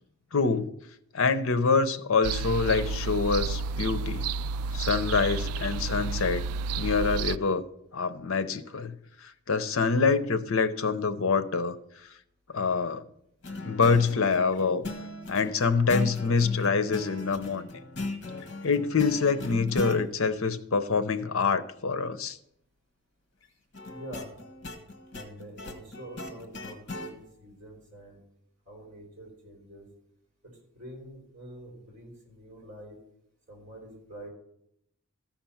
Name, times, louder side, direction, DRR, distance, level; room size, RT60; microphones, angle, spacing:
voice 1, 0.3-0.6 1.1-4.2 4.7-6.4 6.8-7.6 7.9-8.9 9.2-11.8 12.5-13.0 13.6-14.8 15.3-17.6 18.6-22.4, left 4 dB, 70° left, 0.7 m, -25 dB
sound 1, 2.2-7.4, right 4 dB, 85° right, 0.3 m, -31 dB
sound 2, 13.4-20.0 23.7-27.1, left 2 dB, 50° left, 1.3 m, -38 dB
voice 2, 23.9-24.3 25.1-28.2 28.6-29.9 30.4-33.0 33.5-34.3, right 1 dB, 35° right, 4.5 m, -46 dB
14.0 x 5.9 x 5.7 m
head